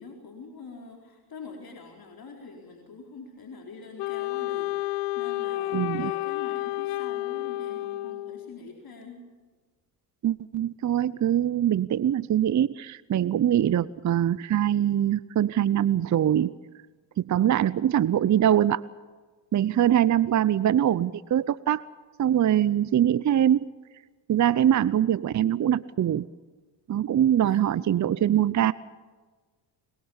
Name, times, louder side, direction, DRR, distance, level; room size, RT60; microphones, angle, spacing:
voice 1, 0.0-9.2 27.4-28.0, left 4 dB, 45° left, 1 dB, 4.4 m, -45 dB
Wind instrument woodwind instrument, 4.0-8.6, left 18 dB, 80° left, 0.7 m, -31 dB
voice 2, 5.7-6.1 10.2-16.6 17.2-18.8 19.5-21.8 22.2-23.7 24.3-26.3 26.9-28.7, right 10 dB, 40° right, 18 dB, 0.7 m, -23 dB
22.5 x 22.0 x 7.2 m, 1.4 s
supercardioid pair, 60°, 48 cm